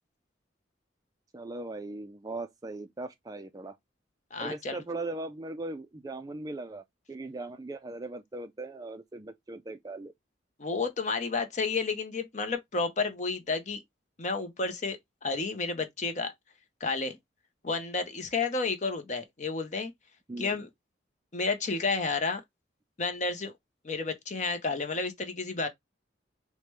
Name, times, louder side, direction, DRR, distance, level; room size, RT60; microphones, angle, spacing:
voice 1, 1.3-3.8 4.4-10.1 20.3-20.6, right 2 dB, 20° right, 0.3 m, -39 dB
voice 2, 4.3-4.8 10.6-13.8 14.2-16.3 16.8-17.1 17.6-19.9 20.4-20.7 21.3-22.4 23.0-23.5 23.8-25.7, left 4 dB, 40° left, 0.7 m, -31 dB
4.9 x 2.1 x 3.0 m
head